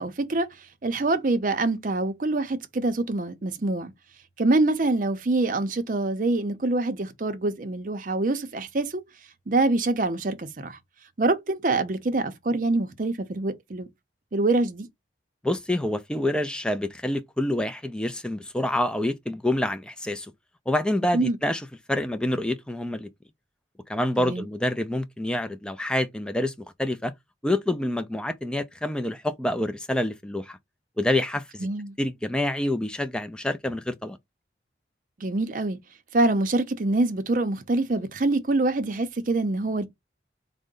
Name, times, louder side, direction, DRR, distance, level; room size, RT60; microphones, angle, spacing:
voice 1, 0.0-3.9 4.4-9.0 9.5-10.8 11.2-13.9 14.3-14.9 21.1-21.4 24.2-24.5 31.6-31.9 35.2-35.8 36.1-39.9, right 2 dB, 45° right, 0.5 m, -25 dB
voice 2, 15.4-20.3 20.7-21.6 21.9-23.1 23.9-27.1 27.4-30.6 31.0-31.7 32.0-34.2, left 1 dB, 5° left, 0.3 m, -27 dB
3.7 x 2.1 x 3.7 m
head